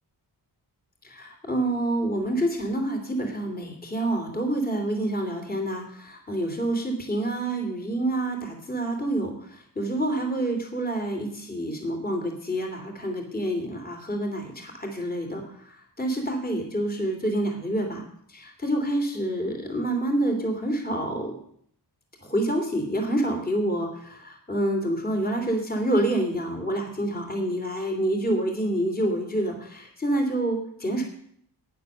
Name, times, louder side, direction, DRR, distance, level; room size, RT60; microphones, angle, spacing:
voice 1, 1.0-18.0 18.3-21.3 22.2-31.0, right 1 dB, 20° left, 2 dB, 2.9 m, -27 dB
10.5 x 9.7 x 6.8 m, 0.66 s
wide cardioid pair, 100°, 41 cm